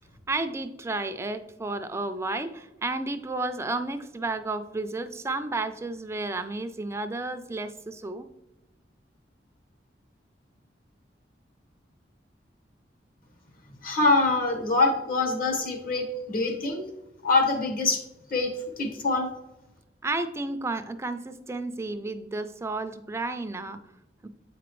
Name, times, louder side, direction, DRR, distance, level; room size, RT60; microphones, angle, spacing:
voice 1, 0.3-8.3 20.0-23.8 24.2-24.3, right 2 dB, 15° right, 9 dB, 0.3 m, -32 dB
voice 2, 13.8-16.8 17.2-18.0 18.3-19.3, left 3 dB, 50° left, 3 dB, 1.2 m, -24 dB
8.4 x 5.0 x 3.1 m, 0.93 s
head